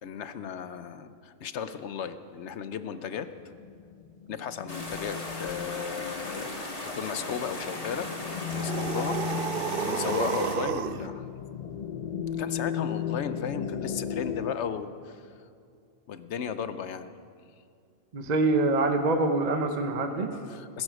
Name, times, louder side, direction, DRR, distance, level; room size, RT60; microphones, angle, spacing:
voice 1, 0.0-3.3 4.3-6.5 6.8-8.1 8.5-11.3 12.4-15.5 16.1-17.1 17.5-17.6 20.3-20.8, left 7 dB, 60° left, 12 dB, 0.9 m, -35 dB
sound 1, 3.2-14.5, left 9 dB, 85° left, 0.3 m, -36 dB
sound 2, 4.7-10.6, left 2 dB, 25° left, 1.7 m, -37 dB
sound 3, 8.5-11.1, right 9 dB, 80° right, 0.5 m, -31 dB
voice 2, 18.1-20.3, right 2 dB, 35° right, 6 dB, 0.9 m, -25 dB
20.0 x 10.5 x 6.3 m, 2.3 s
omnidirectional pair, 1.5 m